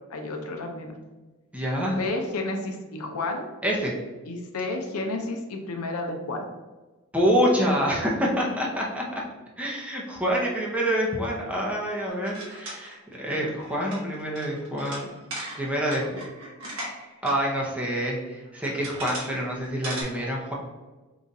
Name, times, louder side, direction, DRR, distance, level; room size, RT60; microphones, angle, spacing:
voice 1, 0.1-0.9 1.9-3.5 4.3-6.4, left 2 dB, 80° left, 3 dB, 0.6 m, -31 dB
voice 2, 1.5-2.0 3.6-3.9 7.1-9.2 9.6-15.1 15.5-16.2 17.2-20.5, equal, 5° right, -3 dB, 0.7 m, -26 dB
sound 1, 12.1-17.3 17.7-17.8 18.5-19.4 19.6-20.0, right 1 dB, 65° right, 1.3 m, -38 dB
3.9 x 2.4 x 4.0 m, 1.2 s
head